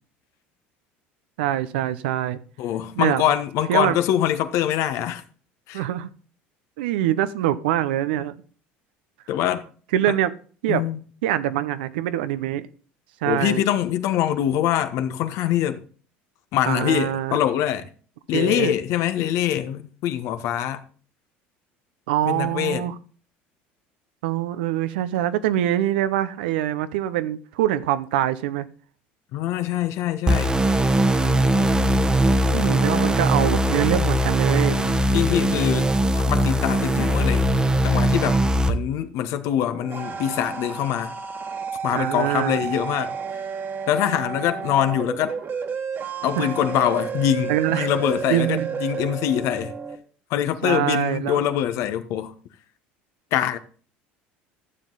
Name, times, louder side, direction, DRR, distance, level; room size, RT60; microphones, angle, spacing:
voice 1, 1.4-2.4 3.0-3.2 3.7-4.0 5.7-6.1 6.8-8.3 9.9-10.3 10.6-10.8 11.2-12.7 13.2-13.6 16.7-17.4 18.3-18.7 22.1-22.9 24.2-28.7 32.4-34.8 41.9-42.6 46.4-46.5 47.5-47.9 48.3-48.7 50.6-51.4, right 12 dB, 80° right, 0.8 m, -24 dB
voice 2, 2.6-5.2 5.7-5.8 9.3-9.6 10.1-10.2 10.7-11.0 13.2-15.8 16.5-17.9 18.3-20.8 22.3-22.9 29.3-30.6 34.8-35.9 36.1-37.5 37.8-38.4 38.7-41.1 41.8-43.1 43.9-45.3 46.2-49.8 50.3-52.3 53.3-53.6, left 11 dB, 65° left, 1.2 m, -24 dB
sound 1, 30.3-38.7, right 1 dB, 15° right, 1.1 m, -20 dB
sound 2, 39.5-50.0, right 6 dB, 40° right, 1.7 m, -31 dB
12.5 x 7.4 x 4.0 m
hypercardioid pair, 85°, 5 cm